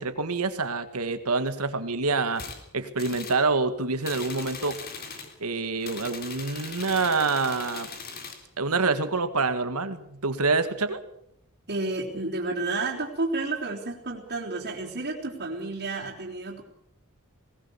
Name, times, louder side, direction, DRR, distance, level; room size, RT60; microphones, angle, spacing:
voice 1, 0.0-2.4 2.7-4.8 5.4-7.9 8.6-11.0, right 3 dB, 75° right, 10 dB, 1.8 m, -26 dB
sound 1, 2.4-2.6 3.0-3.4 4.0-5.3 5.8-8.4, left 5 dB, 45° left, 3.6 m, -39 dB
voice 2, 11.7-16.6, right 3 dB, 50° right, -4 dB, 3.6 m, -31 dB
20.0 x 20.0 x 7.2 m, 0.77 s
head